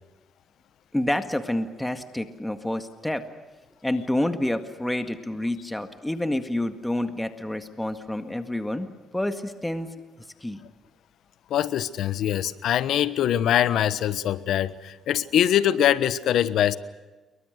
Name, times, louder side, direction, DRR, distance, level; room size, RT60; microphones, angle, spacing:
voice 1, 0.9-3.2 3.8-8.9 9.1-9.9 10.4-10.6, left 1 dB, 10° left, 8 dB, 1.9 m, -28 dB
voice 2, 11.5-16.8, left 11 dB, 75° left, 15 dB, 1.2 m, -23 dB
29.0 x 23.0 x 6.6 m, 1.2 s
cardioid pair, 90°, 0 cm